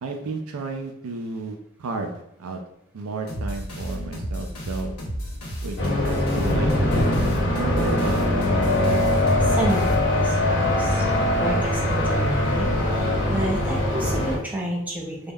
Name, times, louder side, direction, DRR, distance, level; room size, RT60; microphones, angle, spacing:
voice 1, 0.0-2.1 2.4-2.6 2.9-4.9 5.6-5.8 6.0-6.7 7.5-8.4, right 3 dB, 70° right, 4 dB, 0.4 m, -32 dB
sound 1, 3.3-10.4, equal, 85° left, 0.8 m, -32 dB
sound 2, 5.8-14.4, left 1 dB, 55° left, 0.7 m, -22 dB
voice 2, 9.4-11.0 11.4-15.3, right 1 dB, 5° right, -2 dB, 0.5 m, -30 dB
3.3 x 2.0 x 2.2 m, 0.82 s
head